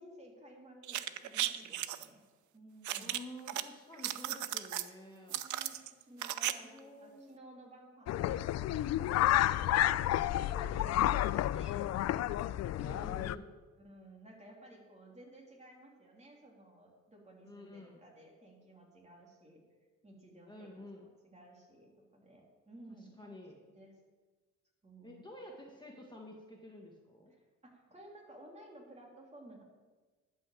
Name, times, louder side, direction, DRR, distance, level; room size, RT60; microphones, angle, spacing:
voice 1, 0.0-2.2 2.5-3.2 5.3-10.5 10.7-12.0 12.8-13.1 13.8-19.6 20.0-20.7 20.9-24.0 24.8-25.3 27.3-29.6, right 1 dB, 20° right, -1 dB, 3.2 m, -56 dB
sound 1, 0.8-2.0 2.8-3.6 3.9-4.9 5.3-6.5 6.8-6.9, right 13 dB, 75° right, 0.6 m, -36 dB
voice 2, 3.0-5.4 6.4-7.4 10.3-11.0 12.8-13.5 17.4-18.0 20.5-21.0 23.2-23.5 25.0-27.3, left 1 dB, 15° left, 0 dB, 1.6 m, -50 dB
sound 2, 8.1-13.3, left 13 dB, 60° left, 0.4 m, -30 dB
11.5 x 5.7 x 7.5 m, 1.3 s
cardioid pair, 90°, 30 cm